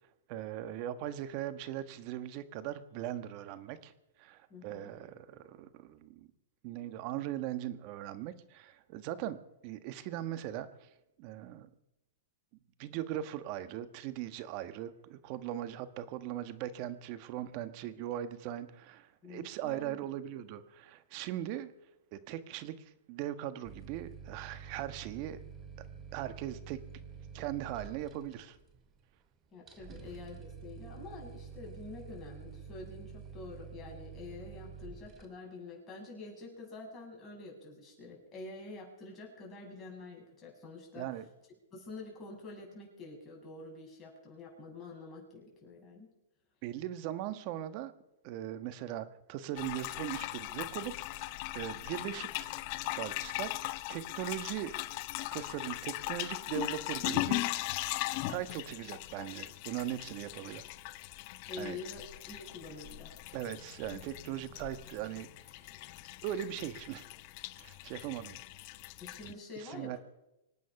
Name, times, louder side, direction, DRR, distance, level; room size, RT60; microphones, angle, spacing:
voice 1, 0.3-3.9 4.2-6.3 6.6-9.4 9.6-10.9 11.2-11.7 12.8-21.7 22.1-25.4 25.8-25.9 26.1-26.8 27.3-28.6 29.9-30.0 41.0-41.2 46.6-47.9 48.2-52.6 52.9-54.7 55.3-57.8 58.3-60.6 61.6-61.8 63.3-65.3 66.2-67.1 67.6-68.4 69.6-70.0, right 12 dB, 45° right, 11 dB, 1.4 m, -39 dB
voice 2, 4.5-4.9 19.2-20.1 29.5-41.1 41.7-46.1 61.5-63.1 69.0-70.0, left 3 dB, 20° left, -1 dB, 7.1 m, -47 dB
sound 1, 23.6-35.2, right 6 dB, 20° right, 2.5 m, -48 dB
sound 2, 49.6-69.3, left 18 dB, 45° left, 0.7 m, -39 dB
25.0 x 9.4 x 5.9 m, 0.93 s
hypercardioid pair, 135°, 0 cm